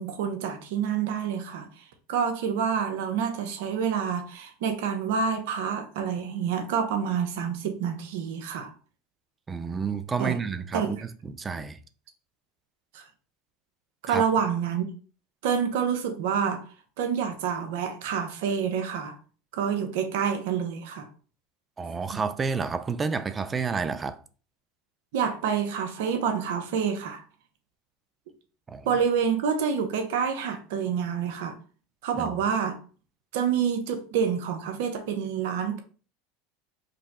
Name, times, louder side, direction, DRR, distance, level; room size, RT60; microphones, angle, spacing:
voice 1, 0.0-1.7 2.1-8.7 10.2-10.4 10.7-11.0 12.9-13.1 14.0-14.9 15.4-16.6 17.0-19.2 19.5-21.1 22.1-22.2 25.1-27.2 28.8-31.6 32.0-32.8 33.3-35.8, right 7 dB, 75° right, 0.9 m, -27 dB
voice 2, 9.5-11.0 11.2-11.8 14.1-14.2 21.8-24.2 28.7-28.9 32.2-32.3, right 5 dB, 20° right, 0.4 m, -30 dB
5.2 x 2.2 x 4.2 m
supercardioid pair, 110°, 0 cm